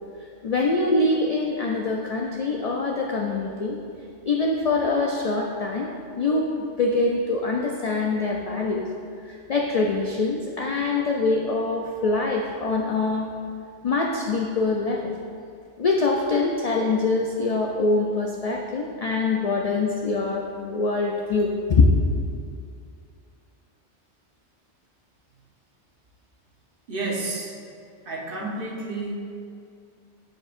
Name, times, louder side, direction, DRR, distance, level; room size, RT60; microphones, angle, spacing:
voice 1, 0.2-3.8 4.3-5.9 6.2-6.5 6.8-8.8 9.3-13.3 13.8-15.4 15.8-22.0, left 3 dB, 80° left, 0 dB, 0.3 m, -24 dB
voice 2, 26.9-27.5 28.1-29.1, right 2 dB, 55° right, -3 dB, 1.1 m, -30 dB
9.3 x 4.5 x 2.5 m, 2.3 s
omnidirectional pair, 1.2 m